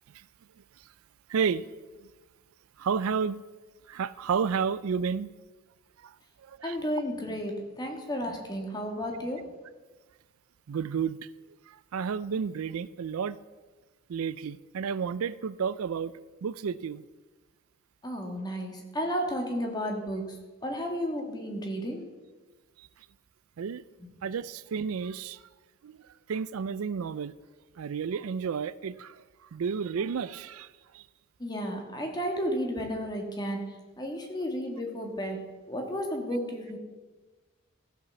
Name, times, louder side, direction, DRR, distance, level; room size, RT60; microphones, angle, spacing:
voice 1, 1.3-1.7 2.0-2.1 2.8-3.4 3.9-5.3 6.0-6.2 6.4-6.8 10.7-11.2 11.7-13.4 14.1-16.1 16.4-17.0 22.8-22.9 23.6-23.8 24.2-25.4 25.8-27.3 27.8-30.7 30.9-31.0, right 6 dB, 85° right, 18 dB, 0.4 m, -31 dB
voice 2, 6.6-9.5 18.0-22.1 31.4-36.8, equal, 20° left, 2 dB, 1.7 m, -33 dB
14.5 x 5.9 x 7.0 m, 1.3 s
head